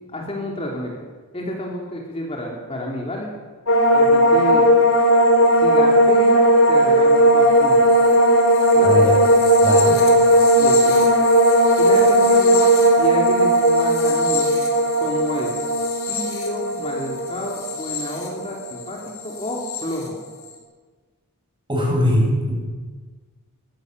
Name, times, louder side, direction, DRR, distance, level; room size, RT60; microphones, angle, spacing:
voice 1, 0.1-1.0 1.3-3.3 3.9-4.7 5.6-7.9 8.7-9.0 10.6-11.1 11.8-14.6 15.0-15.5 16.1-20.2, left 1 dB, 25° left, -1 dB, 3.2 m, -30 dB
sound 1, 3.7-18.9 19.2-19.8, equal, 65° left, 4.3 m, -16 dB
voice 2, 8.8-9.1 9.6-10.0 21.7-22.5, equal, 20° right, -1 dB, 7.0 m, -20 dB
21.5 x 15.5 x 8.0 m, 1.4 s
head